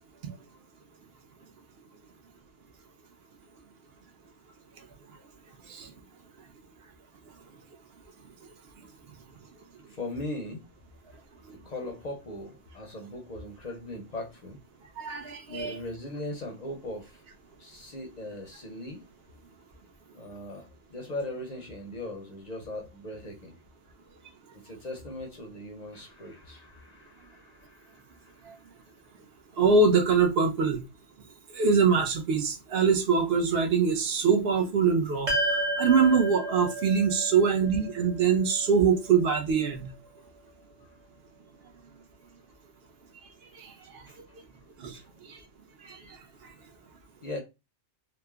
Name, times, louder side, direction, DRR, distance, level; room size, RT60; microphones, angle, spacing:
voice 1, 9.9-10.7 11.6-14.6 15.5-17.2 17.6-19.0 20.1-23.6 24.5-28.6 40.2-40.3 40.8-40.9 44.1-44.4 44.9-45.1 47.2-47.4, left 1 dB, 50° left, 0.5 m, -39 dB
voice 2, 15.0-15.8 28.4-28.6 29.6-30.8 31.5-39.9 43.5-44.0 44.8-45.4 45.8-46.2 46.4-46.5, right 5 dB, 65° right, 0.8 m, -24 dB
sound 1, 35.3-39.7, right 1 dB, 40° right, 1.0 m, -32 dB
3.1 x 2.0 x 2.2 m
omnidirectional pair, 1.2 m